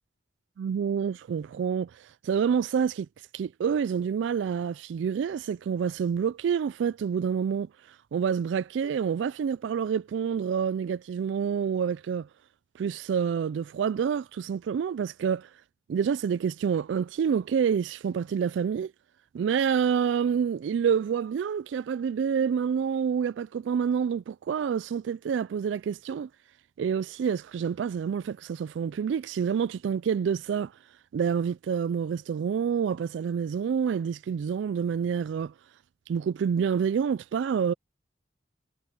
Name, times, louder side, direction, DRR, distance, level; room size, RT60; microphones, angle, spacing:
voice 1, 0.6-3.1 3.3-7.7 8.1-12.3 12.8-15.5 15.9-18.9 19.3-26.3 26.8-30.7 31.1-35.5 36.1-37.7, right 7 dB, 85° right, 0.3 m, -28 dB
head